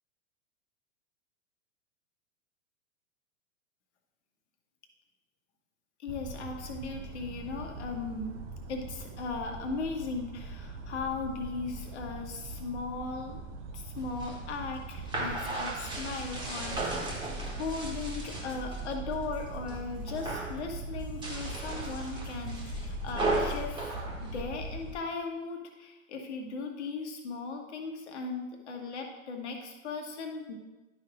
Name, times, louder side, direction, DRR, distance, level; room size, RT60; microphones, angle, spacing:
voice 1, 6.0-8.4 8.7-13.4 13.7-17.1 17.5-24.0 24.2-30.5, left 4 dB, 55° left, 2 dB, 1.5 m, -37 dB
sound 1, 6.1-24.9, right 3 dB, 35° right, 0.8 m, -42 dB
sound 2, 14.0-18.9 19.3-19.8 20.1-20.6 21.1-25.0, right 2 dB, 10° right, 1.6 m, -36 dB
sound 3, 16.7-23.9, equal, 15° left, 1.0 m, -43 dB
11.5 x 5.6 x 2.6 m, 1.1 s
figure-of-eight pair, 100°, 39 cm